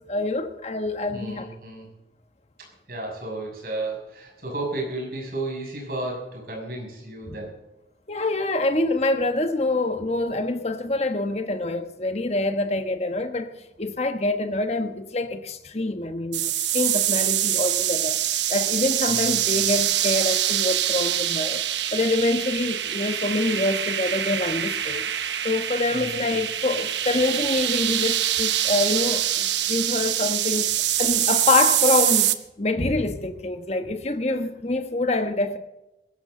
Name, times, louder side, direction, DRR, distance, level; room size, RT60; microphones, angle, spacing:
voice 1, 0.1-1.5 7.3-7.4 8.1-13.5 13.8-18.2 18.5-21.6 21.9-25.0 25.4-30.7 31.0-35.6, left 2 dB, 35° left, 1.3 m, -25 dB
voice 2, 1.1-1.9 2.6-7.6 19.1-19.5 25.9-26.2, right 2 dB, 55° right, 6.4 m, -33 dB
sound 1, 16.3-32.3, right 12 dB, 85° right, 1.0 m, -24 dB
22.0 x 13.5 x 3.9 m
head